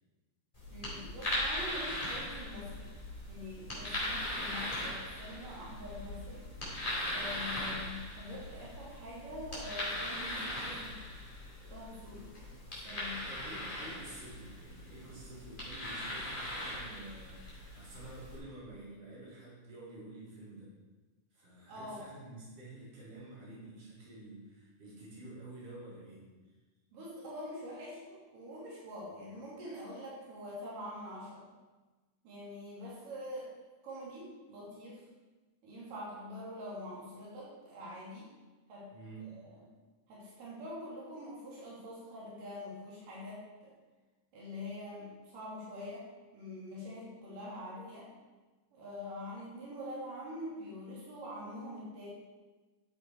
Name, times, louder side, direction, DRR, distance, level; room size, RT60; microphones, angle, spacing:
sound 1, 0.5-18.4, left 1 dB, 15° left, 3.9 m, -39 dB
voice 1, 0.7-2.9 3.3-6.5 7.1-11.0 11.7-12.3 12.8-13.2 21.7-22.0 26.9-31.5 32.2-33.5 33.8-35.0 35.6-38.3 38.7-38.9 39.2-39.7 40.1-43.7 44.3-46.1 46.3-48.1 48.7-52.1, left 1 dB, 85° right, -6 dB, 4.4 m, -45 dB
voice 2, 13.2-20.7 21.3-26.3 38.9-39.3, right 2 dB, 50° right, -7 dB, 5.0 m, -49 dB
13.0 x 8.0 x 4.7 m, 1.2 s
omnidirectional pair, 3.7 m